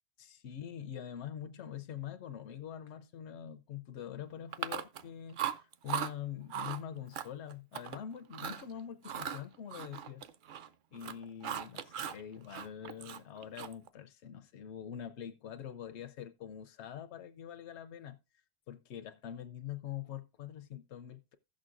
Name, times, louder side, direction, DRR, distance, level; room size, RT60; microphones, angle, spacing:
voice 1, 0.2-10.2 10.9-18.2 18.7-21.4, left 9 dB, 85° left, 0.9 m, -44 dB
Chewing mastication, 4.5-5.1 5.4-6.1 6.5-6.8 7.1-8.0 8.3-8.6 9.0-10.7 10.9-12.2 12.5-13.9, right 9 dB, 55° right, 0.7 m, -38 dB
16.0 x 6.3 x 2.4 m
omnidirectional pair, 1.1 m